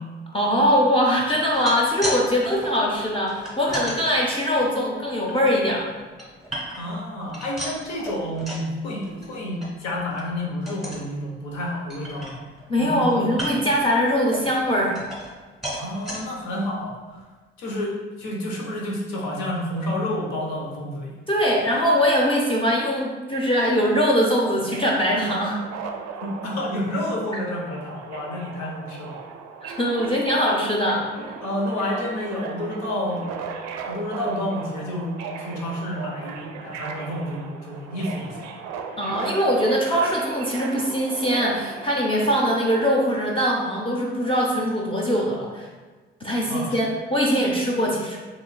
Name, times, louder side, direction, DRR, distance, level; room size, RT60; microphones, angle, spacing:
voice 1, 0.3-5.9 12.7-15.0 21.3-25.6 29.6-31.0 39.0-45.7 46.2-48.2, equal, 20° left, -3 dB, 0.6 m, -22 dB
sound 1, 1.4-2.2 2.5-4.0 4.5-5.5 6.0-7.0 7.3-8.7 9.0-9.3 9.6-9.7 10.1-10.3 10.7-11.1 11.5-11.6 11.9-12.7 13.3-13.8 14.3-15.4 15.6-16.2 16.8-16.9 17.2-17.3, right 1 dB, ahead, 1.5 m, -34 dB
voice 2, 6.8-12.4 12.8-13.3 15.7-17.2 17.6-21.1 26.2-29.2 30.0-30.1 31.4-33.2 33.9-38.5 46.5-46.8, left 1 dB, 65° left, -3 dB, 0.8 m, -29 dB
Subway metro underground, 24.1-42.9, right 5 dB, 60° right, 0.4 m, -37 dB
3.8 x 3.1 x 2.2 m, 1.4 s
hypercardioid pair, 45°, 29 cm